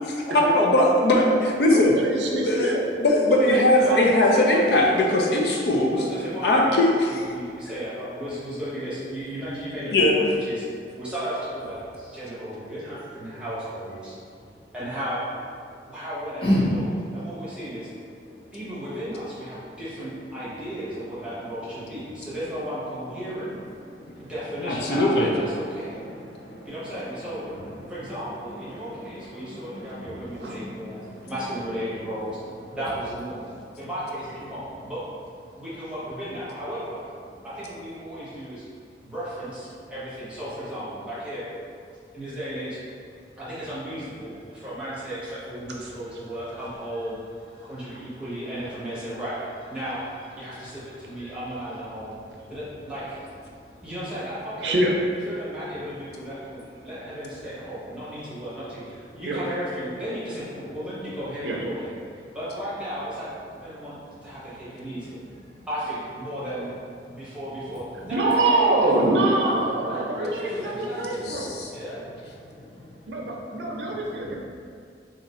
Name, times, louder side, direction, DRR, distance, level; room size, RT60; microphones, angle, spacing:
voice 1, 0.3-1.9 2.3-2.7 3.0-6.0 6.4-7.1 9.9-10.2 24.7-25.3 71.3-71.7, left 1 dB, 65° left, -1 dB, 0.5 m, -20 dB
voice 2, 1.7-2.9 3.3-4.1 30.3-30.6 45.8-45.9 47.9-48.0 54.6-55.0 59.3-59.4 61.4-61.6 68.1-71.6 73.1-74.3, right 2 dB, 80° right, -1 dB, 0.5 m, -25 dB
voice 3, 3.8-5.5 5.9-10.6 11.0-14.1 14.7-15.2 15.9-17.9 18.5-23.5 24.2-26.0 26.6-27.4 27.9-31.0 31.3-32.4 32.7-33.4 33.8-35.0 35.6-37.0 37.4-38.6 39.0-41.5 42.1-42.8 43.4-47.2 47.6-49.4 49.7-50.0 50.4-52.2 52.5-53.2 53.8-54.8 55.2-61.9 62.3-63.9 64.2-65.2 65.7-66.7 67.0-69.5 69.8-71.1 71.7-72.0, equal, 5° right, -12 dB, 1.0 m, -34 dB
voice 4, 16.4-16.7 18.3-18.6 23.8-24.3 24.8-24.9 25.8-28.1 28.5-31.3 33.4-33.7 63.8-63.9 64.9-65.0 65.5-65.6 71.2-71.3 72.4-73.1, left 1 dB, 30° left, -9 dB, 0.8 m, -33 dB
2.8 x 2.5 x 4.2 m, 2.3 s
head